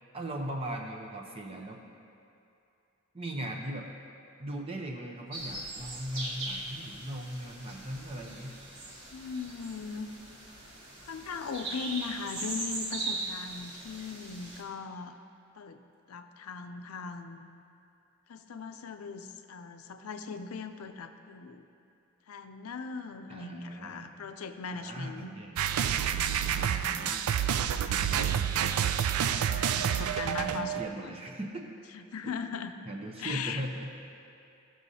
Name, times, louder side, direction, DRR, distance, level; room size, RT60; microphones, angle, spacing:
voice 1, 0.1-1.8 3.1-3.9 4.4-8.5 23.3-24.2 24.7-25.6 26.5-27.3 29.8-31.7 32.2-32.3 32.8-33.9, right 1 dB, 25° right, 1 dB, 0.7 m, -39 dB
sound 1, 5.3-14.6, right 2 dB, 65° right, 1.5 m, -40 dB
voice 2, 9.1-10.1 11.0-15.1 15.6-15.8 16.1-17.6 18.3-21.6 22.3-25.3 26.1-27.2 27.8-28.8 29.4-31.1 31.9-32.7 33.2-33.6, left 5 dB, 85° left, 7 dB, 0.5 m, -40 dB
sound 2, 25.6-30.9, right 9 dB, 85° right, 0.3 m, -28 dB
14.5 x 6.2 x 2.7 m, 2.6 s
head